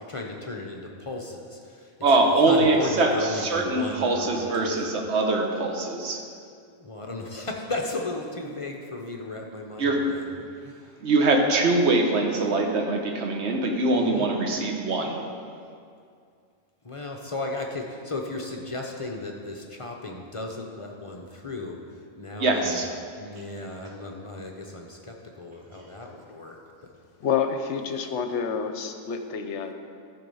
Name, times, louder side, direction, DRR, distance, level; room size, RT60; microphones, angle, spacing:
voice 1, 0.1-1.9 2.5-4.8 6.8-10.3 10.6-10.9 13.9-14.3 16.8-21.8 22.2-22.8 23.2-26.6, left 2 dB, 35° left, 1 dB, 0.6 m, -35 dB
voice 2, 2.0-6.2 9.8-10.2 11.0-15.2 22.4-22.9, right 2 dB, 55° right, 2 dB, 1.3 m, -23 dB
voice 3, 27.2-29.7, left 6 dB, 60° left, 6 dB, 0.9 m, -28 dB
13.5 x 4.8 x 5.5 m, 2.3 s
omnidirectional pair, 1.5 m